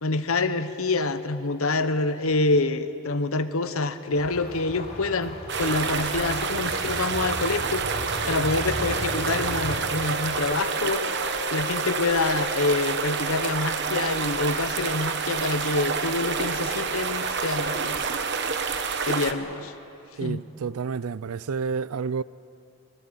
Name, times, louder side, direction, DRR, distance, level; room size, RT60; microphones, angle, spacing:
voice 1, 0.0-7.8 8.3-11.0 11.5-18.1 19.1-19.7 20.2-20.4, left 3 dB, 75° left, 1.0 m, -26 dB
sound 1, 4.1-9.8, equal, 45° left, 3.4 m, -36 dB
sound 2, 5.5-19.3, right 5 dB, 50° right, 1.1 m, -28 dB
Wind instrument woodwind instrument, 8.8-13.4, left 4 dB, 60° left, 1.3 m, -39 dB
voice 2, 20.2-22.2, right 5 dB, 85° right, 0.5 m, -30 dB
20.5 x 20.0 x 8.0 m
head